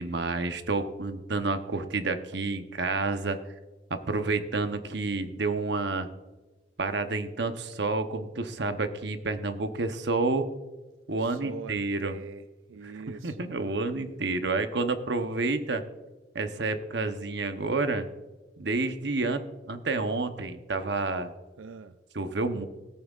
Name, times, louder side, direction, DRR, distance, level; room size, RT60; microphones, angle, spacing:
voice 1, 0.0-3.4 3.9-6.1 6.8-10.5 11.1-12.2 12.8-15.8 16.3-18.1 18.6-19.4 19.7-21.3 22.1-22.7, right 3 dB, 60° right, 0.9 m, -29 dB
voice 2, 11.2-11.8 12.0-13.5 21.6-22.0, right 5 dB, 85° right, 0.4 m, -43 dB
17.5 x 9.0 x 2.4 m
head